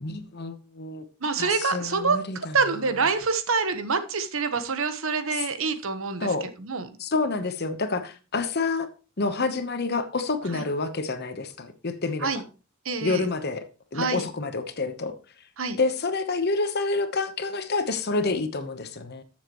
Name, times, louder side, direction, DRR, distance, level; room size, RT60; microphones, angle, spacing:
voice 1, 0.0-1.0 1.4-2.5 6.2-6.5 7.0-8.9 9.2-12.3 13.0-13.6 13.9-15.1 15.7-19.2, left 3 dB, 45° left, 1.0 m, -28 dB
voice 2, 1.2-6.9 10.5-10.6 12.2-12.4 12.8-13.3 14.0-14.3 15.6-15.8, right 4 dB, 65° right, 1.1 m, -26 dB
13.0 x 7.4 x 3.1 m
head